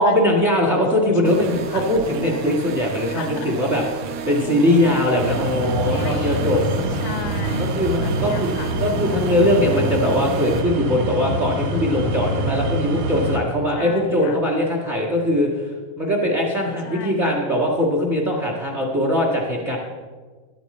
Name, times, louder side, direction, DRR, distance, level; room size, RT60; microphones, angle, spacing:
voice 1, 0.0-6.6 7.7-8.5 8.8-15.7 16.0-19.8, left 1 dB, 40° right, 0 dB, 1.0 m, -21 dB
voice 2, 0.7-1.8 2.9-3.6 5.6-6.7 7.0-8.8 13.8-14.4 16.8-17.4, left 5 dB, 85° left, 7 dB, 1.2 m, -35 dB
sound 1, 1.3-10.6, right 5 dB, 85° right, 2.8 m, -32 dB
sound 2, 5.2-13.4, equal, 70° right, 3.6 m, -25 dB
13.0 x 12.0 x 4.2 m, 1.4 s
omnidirectional pair, 4.1 m